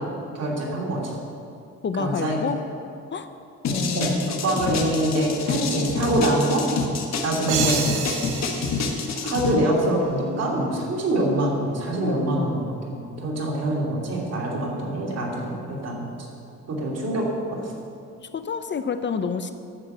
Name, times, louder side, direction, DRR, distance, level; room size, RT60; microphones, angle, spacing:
voice 1, 0.3-1.1 2.0-2.4 3.9-4.1 4.4-6.6 7.2-7.8 9.2-16.1 16.7-17.7, right 1 dB, 55° right, -2 dB, 3.0 m, -25 dB
voice 2, 1.8-2.6 3.1-3.3 3.7-4.3 12.0-12.6 18.2-19.5, left 6 dB, 40° left, 9 dB, 0.6 m, -28 dB
sound 1, 3.6-9.5, left 4 dB, 60° left, 1.5 m, -27 dB
sound 2, 7.5-10.1, right 6 dB, 90° right, 1.0 m, -30 dB
11.0 x 6.2 x 7.8 m, 2.4 s
cardioid pair, 90°, 30 cm